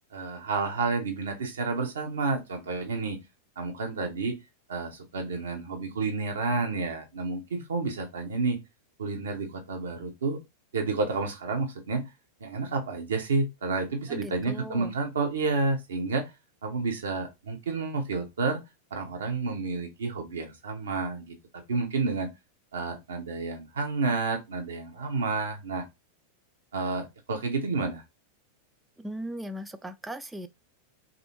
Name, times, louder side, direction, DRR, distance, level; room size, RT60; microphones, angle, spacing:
voice 1, 0.1-3.2 3.6-4.4 4.7-8.6 9.0-10.4 10.7-12.0 12.4-16.2 16.6-18.6 18.9-21.4 21.7-22.3 22.7-25.8 26.7-28.0, right 3 dB, 65° right, 0.8 m, -30 dB
voice 2, 14.1-14.9 29.0-30.5, right 1 dB, 5° right, 0.3 m, -38 dB
3.4 x 2.6 x 2.9 m
figure-of-eight pair, 90°, 0 cm